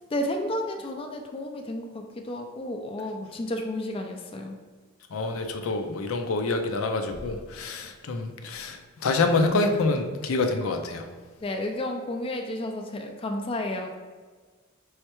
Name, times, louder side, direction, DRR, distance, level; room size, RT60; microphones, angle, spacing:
voice 1, 0.1-4.6 11.4-13.9, left 1 dB, 25° left, 3 dB, 0.4 m, -32 dB
voice 2, 5.1-11.1, left 3 dB, 90° left, 5 dB, 0.5 m, -27 dB
5.5 x 3.2 x 3.0 m, 1.5 s
head